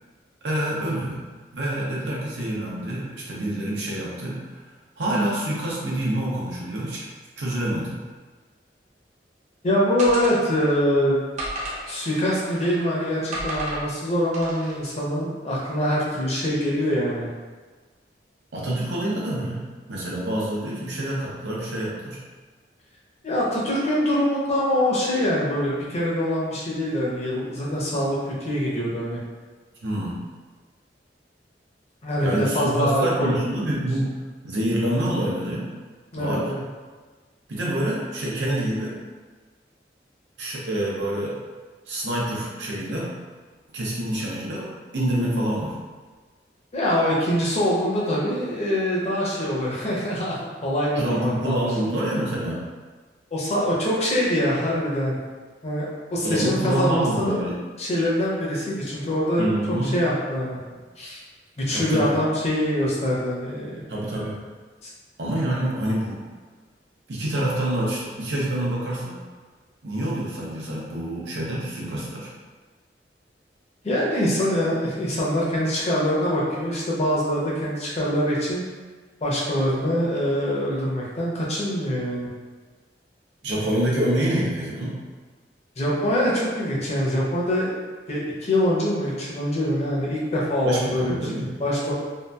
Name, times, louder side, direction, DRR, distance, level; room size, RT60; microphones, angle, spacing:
voice 1, 0.4-1.2 1.5-4.4 5.0-7.0 7.4-8.0 18.5-22.2 29.8-30.2 32.2-34.1 34.4-35.7 36.2-36.5 37.5-39.0 40.4-41.3 41.9-43.2 43.7-44.7 44.9-45.8 51.0-52.6 56.2-57.6 59.4-59.9 61.7-62.1 63.9-64.4 65.2-66.2 67.1-69.2 69.8-72.3 83.4-85.0 90.6-91.5, right 1 dB, 80° right, -5 dB, 0.6 m, -26 dB
voice 2, 9.6-11.2 11.9-17.3 23.2-29.2 32.0-33.3 36.1-36.6 46.7-51.6 53.3-55.2 55.6-57.4 57.8-60.6 61.0-61.2 61.6-63.8 64.8-64.9 73.8-78.6 79.2-82.3 85.8-87.7 88.1-91.9, equal, 40° left, -5 dB, 0.6 m, -24 dB
sound 1, 10.0-10.8 11.4-12.8 13.3-13.9 14.3-14.8, right 1 dB, 40° right, 0.6 m, -33 dB
2.7 x 2.4 x 2.2 m, 1.4 s
head